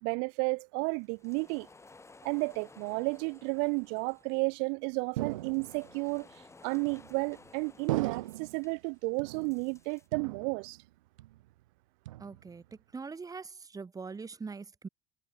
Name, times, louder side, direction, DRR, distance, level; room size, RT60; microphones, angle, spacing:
voice 1, 0.0-1.7 2.2-6.3 6.6-10.8, right 40 dB or more, 75° right, 2.9 m, -32 dB
sound 1, 0.9-10.1, left 3 dB, 15° left, 6.3 m, -57 dB
sound 2, 5.2-6.0 6.9-7.4 7.9-8.7 9.2-9.8 10.1-10.9 11.2-11.6 12.1-12.7, right 16 dB, 90° right, 1.2 m, -38 dB
voice 2, 12.2-14.9, right 4 dB, 20° right, 2.2 m, -42 dB
supercardioid pair, 85°, 16 cm